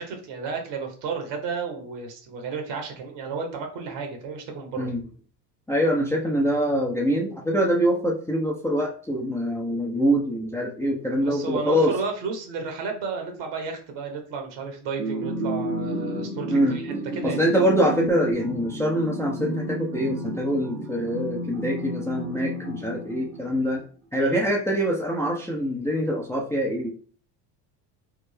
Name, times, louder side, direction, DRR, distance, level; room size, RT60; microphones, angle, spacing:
voice 1, 0.0-4.9 11.1-17.4 24.2-24.4, right 5 dB, 65° right, 3 dB, 1.3 m, -32 dB
voice 2, 5.7-11.9 16.5-16.8 17.2-23.8 24.1-26.9, equal, 5° left, -1 dB, 0.4 m, -24 dB
sound 1, 15.0-23.7, right 2 dB, 85° right, 1.0 m, -32 dB
3.5 x 2.0 x 3.3 m, 0.42 s
hypercardioid pair, 80°, 49 cm